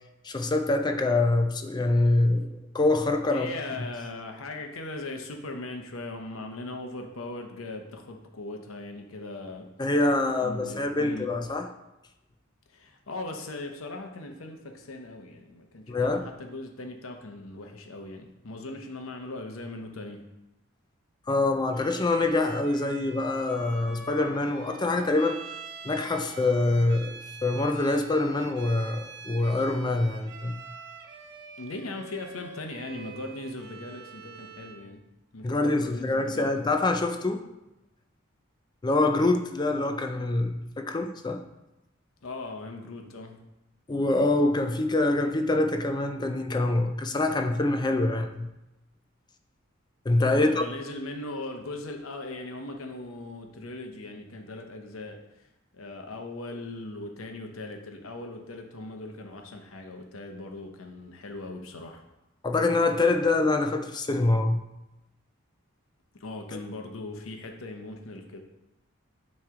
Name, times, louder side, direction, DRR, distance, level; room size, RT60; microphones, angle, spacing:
voice 1, 0.2-3.5 3.8-3.9 9.8-11.7 15.9-16.3 21.3-25.4 25.8-27.1 27.4-30.6 35.4-37.4 38.8-41.4 43.9-48.5 50.1-50.6 62.4-64.6, left 2 dB, 20° left, 0.4 m, -25 dB
voice 2, 3.3-9.7 10.4-11.3 12.7-20.2 31.6-35.0 35.3-36.5 42.2-43.4 50.4-55.2 55.7-62.0 66.2-68.4, left 2 dB, 85° left, 0.8 m, -39 dB
Bowed string instrument, 21.7-34.9, right 4 dB, 55° right, 0.6 m, -45 dB
8.7 x 3.2 x 3.6 m
head